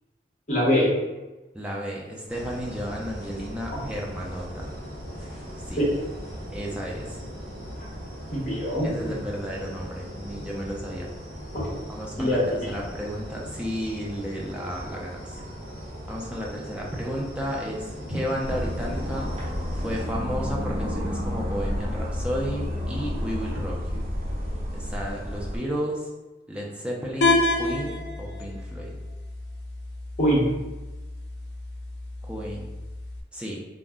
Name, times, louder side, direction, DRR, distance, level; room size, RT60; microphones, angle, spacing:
voice 1, 0.5-0.9 5.8-5.9 7.8-7.9 8.3-9.2 12.2-12.7 30.2-30.5, equal, 40° left, -5 dB, 0.8 m, -23 dB
voice 2, 1.5-4.7 5.6-5.8 6.5-7.2 8.8-11.1 11.9-12.4 12.7-15.4 16.1-19.3 19.7-24.1 24.7-26.1 26.5-28.9 32.2-32.7 33.3-33.6, equal, 5° right, -3 dB, 0.4 m, -33 dB
sound 1, 2.3-20.1, equal, 50° right, 1.3 m, -38 dB
sound 2, 18.4-25.6, left 1 dB, 35° right, 0.8 m, -30 dB
sound 3, 27.2-33.2, left 2 dB, 75° left, 0.4 m, -29 dB
2.4 x 2.0 x 3.5 m, 1.2 s
head